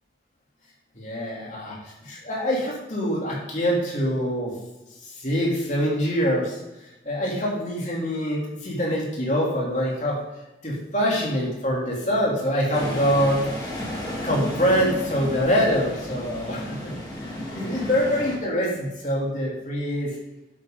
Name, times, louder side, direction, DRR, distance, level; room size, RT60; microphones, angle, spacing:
voice 1, 0.9-4.5 5.0-10.2 10.6-13.8 14.2-20.2, equal, 40° left, -3 dB, 3.3 m, -25 dB
sound 1, 12.7-18.4, equal, 20° left, 2.3 m, -33 dB
11.0 x 8.9 x 4.0 m, 0.95 s
head